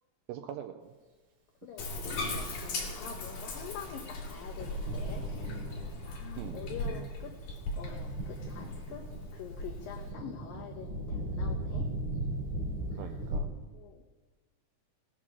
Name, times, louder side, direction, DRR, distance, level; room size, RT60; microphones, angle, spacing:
voice 1, 0.3-0.9 6.4-7.1 12.9-13.6, right 10 dB, 80° right, 7 dB, 2.4 m, -43 dB
voice 2, 1.6-5.3 6.0-7.3 7.7-9.1 9.3-11.9 12.9-13.1 13.7-14.2, left 8 dB, 85° left, 3 dB, 2.0 m, -46 dB
Bathtub (filling or washing), 1.8-10.1, left 2 dB, 50° left, 3.0 m, -38 dB
Thunder, 3.7-13.4, right 1 dB, 45° right, 4.0 m, -38 dB
19.0 x 7.4 x 6.1 m, 1.3 s
omnidirectional pair, 5.3 m